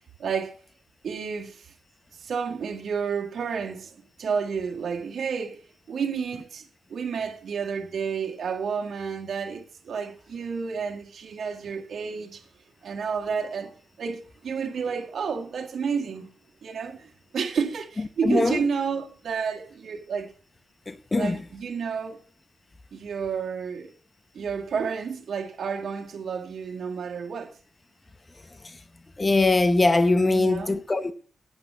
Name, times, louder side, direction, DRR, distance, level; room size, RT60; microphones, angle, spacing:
voice 1, 0.2-0.6 1.0-1.7 2.1-5.6 5.9-12.5 12.8-16.3 16.6-20.3 21.1-22.2 22.9-23.9 24.3-27.6 30.3-30.8, right 6 dB, 80° right, 1.8 m, -31 dB
voice 2, 18.2-18.6 20.9-21.4 28.6-28.8 29.2-31.1, left 2 dB, 25° left, 0.8 m, -22 dB
8.8 x 8.8 x 5.4 m
cardioid pair, 85°, 0 cm